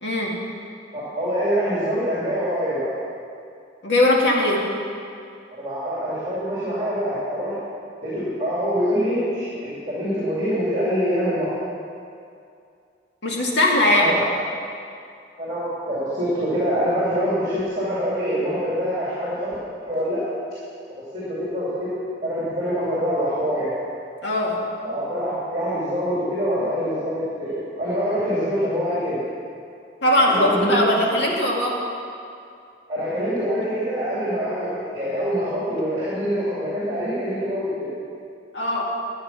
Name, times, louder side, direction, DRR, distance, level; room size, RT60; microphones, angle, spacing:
voice 1, 0.0-0.3 3.8-4.6 13.2-14.1 24.2-24.6 30.0-31.8 38.5-38.8, left 1 dB, 65° left, -2 dB, 2.0 m, -20 dB
voice 2, 0.9-2.9 5.5-7.5 8.0-11.5 13.9-14.2 15.4-19.5 19.9-20.2 21.1-21.9 22.2-23.7 24.8-29.2 30.2-30.9 32.9-37.9, equal, 25° right, -9 dB, 3.0 m, -25 dB
12.5 x 8.9 x 6.0 m, 2.4 s
head